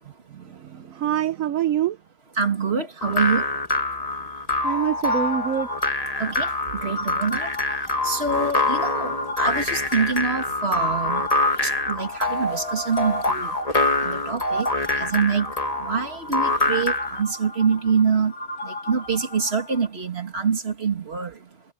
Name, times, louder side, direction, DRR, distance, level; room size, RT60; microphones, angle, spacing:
voice 1, 0.3-2.0 4.6-5.7, right 10 dB, 60° right, 1.0 m, -25 dB
voice 2, 2.4-3.4 6.2-6.5 6.8-7.5 8.0-11.3 11.6-13.5 14.0-14.7 15.0-15.5 15.8-18.3 18.6-21.3, right 5 dB, 35° right, 2.3 m, -25 dB
sound 1, 3.0-17.2, left 2 dB, 20° left, 2.2 m, -25 dB
sound 2, 5.1-19.9, left 1 dB, 65° left, 4.2 m, -36 dB
omnidirectional pair, 2.0 m